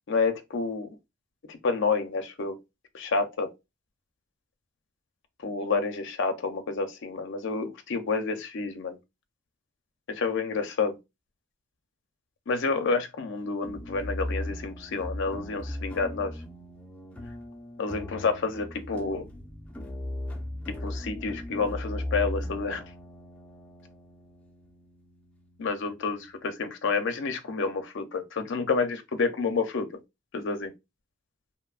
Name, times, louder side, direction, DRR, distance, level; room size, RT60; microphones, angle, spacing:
voice 1, 0.1-0.9 1.5-2.6 2.9-3.5 5.4-9.0 10.1-10.9 12.5-16.3 17.8-19.2 20.8-22.8 25.6-26.2 26.4-29.9 30.3-30.7, left 4 dB, 60° left, 0.5 m, -29 dB
sound 1, 13.6-26.5, left 1 dB, 5° left, 0.5 m, -38 dB
2.9 x 2.1 x 2.3 m
head